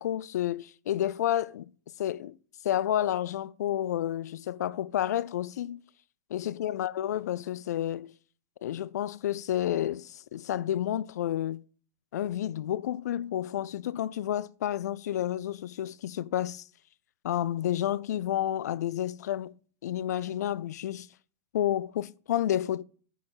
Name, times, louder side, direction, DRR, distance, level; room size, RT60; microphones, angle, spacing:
voice 1, 0.0-1.7 2.0-2.4 2.6-5.8 6.3-8.1 8.6-11.6 12.1-16.6 17.2-19.5 19.8-21.1 21.5-22.8, left 11 dB, 80° left, 0.4 m, -30 dB
8.6 x 5.4 x 5.8 m
hypercardioid pair, 145°, 9 cm